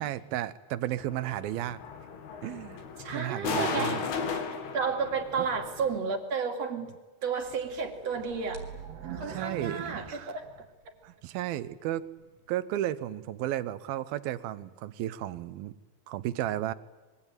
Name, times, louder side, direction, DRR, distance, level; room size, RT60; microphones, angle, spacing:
voice 1, 0.0-1.8 2.4-2.8 3.1-4.1 5.4-5.5 9.3-10.4 11.0-12.0 12.5-15.7 16.1-16.7, right 13 dB, 75° right, 14 dB, 2.7 m, -33 dB
sound 1, 1.0-6.0, left 5 dB, 80° left, 4.4 m, -36 dB
voice 2, 3.0-4.0 4.7-6.9 7.2-8.7 9.0-10.5, right 5 dB, 45° right, 5 dB, 3.2 m, -32 dB
sound 2, 7.4-11.1 11.6-11.7 12.3-12.4, right 6 dB, 90° right, 5.5 m, -43 dB
25.5 x 22.5 x 9.1 m, 1.2 s
omnidirectional pair, 4.5 m